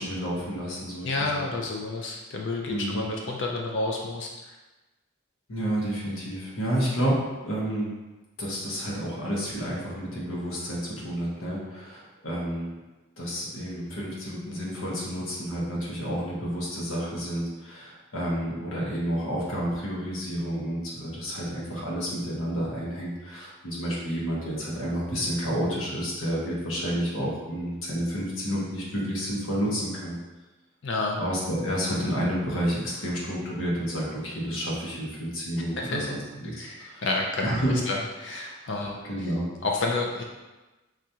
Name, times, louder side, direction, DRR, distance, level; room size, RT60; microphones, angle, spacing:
voice 1, 0.0-1.4 2.7-3.0 5.5-7.9 8.4-12.7 13.2-30.2 31.2-37.0 37.4-37.7 38.7-39.5, equal, 80° left, -4 dB, 1.0 m, -30 dB
voice 2, 1.0-4.6 30.8-31.2 35.8-35.9 36.6-37.5 37.9-39.0 39.6-40.2, left 3 dB, 60° left, 0 dB, 0.4 m, -30 dB
4.8 x 2.4 x 2.8 m, 1.1 s
head